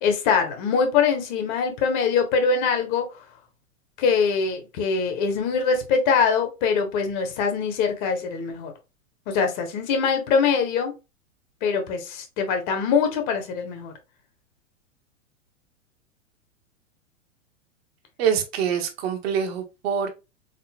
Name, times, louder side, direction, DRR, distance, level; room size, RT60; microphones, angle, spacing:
voice 1, 0.0-3.0 4.0-8.7 9.3-10.9 11.6-13.9, left 5 dB, 40° left, 1.0 m, -23 dB
voice 2, 18.2-20.1, right 7 dB, 50° right, 1.0 m, -25 dB
3.9 x 3.7 x 2.3 m
figure-of-eight pair, 100°, 39 cm